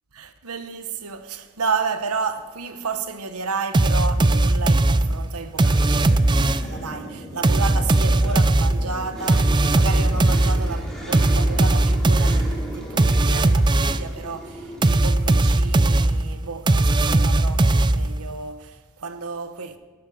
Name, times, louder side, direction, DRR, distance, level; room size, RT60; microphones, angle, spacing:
voice 1, 0.1-19.8, right 4 dB, 85° right, 1.1 m, -32 dB
sound 1, 3.7-6.8 7.4-14.2 14.8-18.3, right 2 dB, 20° right, 0.4 m, -19 dB
sound 2, 5.5-15.9, right 1 dB, ahead, 2.9 m, -37 dB
15.5 x 13.0 x 5.1 m
head